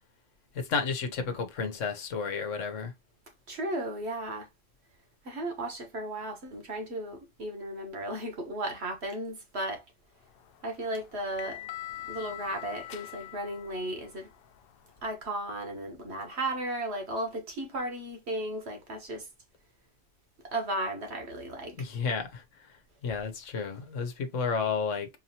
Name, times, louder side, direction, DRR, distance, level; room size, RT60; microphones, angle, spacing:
voice 1, 0.5-2.9 21.8-22.4 23.0-25.1, left 5 dB, 85° left, 1.2 m, -31 dB
voice 2, 3.5-4.5 5.2-9.8 10.6-11.6 12.1-14.3 15.0-19.3 20.4-21.7, right 1 dB, 60° right, 1.5 m, -35 dB
sound 1, 10.3-15.1, left 13 dB, 60° left, 0.6 m, -44 dB
4.6 x 2.8 x 2.9 m
omnidirectional pair, 1.3 m